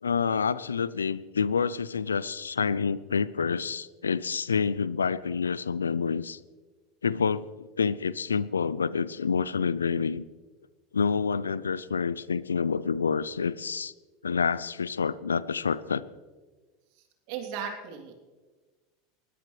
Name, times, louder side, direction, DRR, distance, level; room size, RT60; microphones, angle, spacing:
voice 1, 0.0-6.4 7.0-10.2 10.9-13.9 14.2-16.0, left 5 dB, 90° left, 19 dB, 0.4 m, -28 dB
voice 2, 17.3-18.1, right 7 dB, 60° right, 2 dB, 3.1 m, -36 dB
20.0 x 16.5 x 3.3 m, 1.3 s
hypercardioid pair, 85°, 0 cm